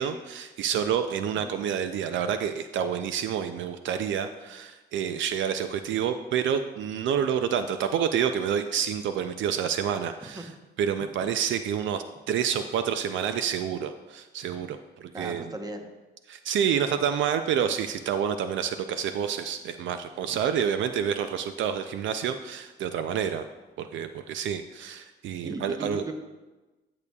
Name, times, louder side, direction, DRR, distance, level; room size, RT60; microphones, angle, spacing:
voice 1, 0.0-10.5 10.8-15.5 16.3-23.5 23.8-26.0, right 8 dB, 75° right, 9 dB, 0.4 m, -28 dB
voice 2, 10.2-10.5 11.2-11.3 15.1-15.9 20.3-20.4 25.4-26.1, right 2 dB, 20° right, 5 dB, 0.9 m, -37 dB
10.5 x 6.8 x 2.3 m, 1.1 s
cardioid pair, 90°, 20 cm